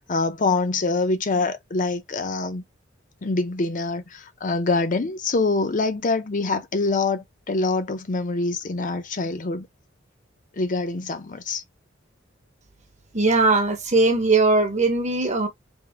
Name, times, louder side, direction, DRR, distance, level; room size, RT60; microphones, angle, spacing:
voice 1, 0.1-2.6 3.2-9.7 10.5-11.6, left 3 dB, 40° left, 0.6 m, -25 dB
voice 2, 13.1-15.5, right 3 dB, 35° right, 0.9 m, -19 dB
3.5 x 2.5 x 3.5 m
head